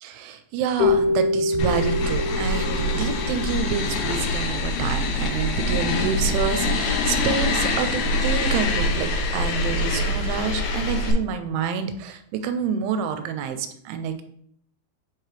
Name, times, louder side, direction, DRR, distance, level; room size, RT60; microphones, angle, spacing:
voice 1, 0.0-14.2, right 7 dB, 85° right, 8 dB, 3.0 m, -28 dB
Keyboard (musical), 0.8-4.0, left 3 dB, 65° left, 3.4 m, -25 dB
sound 1, 1.6-11.1, left 2 dB, 85° left, 3.4 m, -24 dB
7.6 x 4.7 x 3.2 m, 0.66 s
omnidirectional pair, 5.5 m